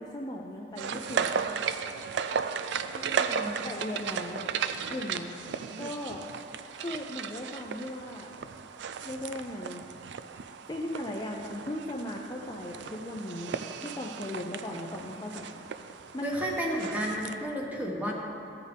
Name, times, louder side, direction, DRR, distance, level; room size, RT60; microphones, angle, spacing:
voice 1, 0.0-1.5 3.6-4.5 4.9-5.4 5.8-6.3 6.8-8.3 9.0-9.8 10.7-15.6 16.1-16.3, left 1 dB, 25° left, -1 dB, 0.5 m, -37 dB
sound 1, 0.8-17.3, right 6 dB, 70° right, 0.4 m, -35 dB
voice 2, 2.9-3.6 16.2-18.1, equal, 10° right, -2 dB, 1.2 m, -32 dB
14.0 x 6.5 x 3.5 m, 2.6 s
head